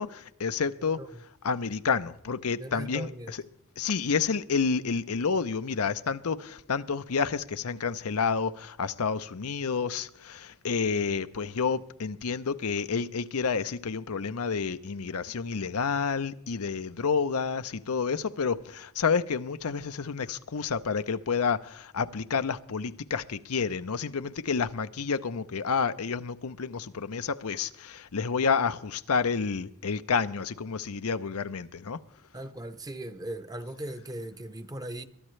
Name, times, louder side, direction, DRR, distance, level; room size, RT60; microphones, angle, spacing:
voice 1, 0.0-3.4 3.8-32.0, left 5 dB, 85° left, 0.7 m, -29 dB
voice 2, 2.6-3.3 32.3-35.0, right 1 dB, 15° right, 0.8 m, -38 dB
22.5 x 12.5 x 3.2 m
head